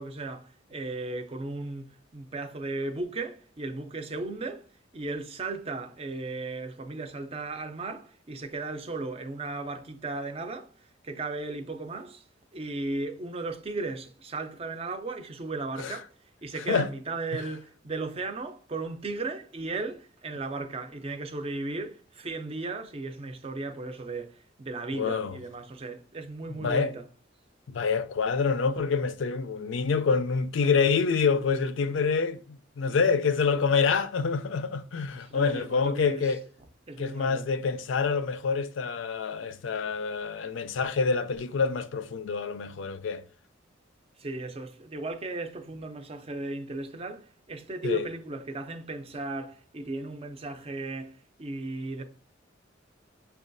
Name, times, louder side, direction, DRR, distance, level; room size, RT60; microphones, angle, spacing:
voice 1, 0.0-1.8 2.1-4.7 4.9-12.2 12.5-16.1 16.4-27.0 35.2-36.3 36.9-37.5 44.2-52.0, right 3 dB, 30° right, 0.5 m, -36 dB
voice 2, 24.9-25.4 26.5-26.9 27.7-36.4 37.0-43.2 47.8-48.1, left 5 dB, 80° left, 0.4 m, -27 dB
5.8 x 2.3 x 2.5 m
head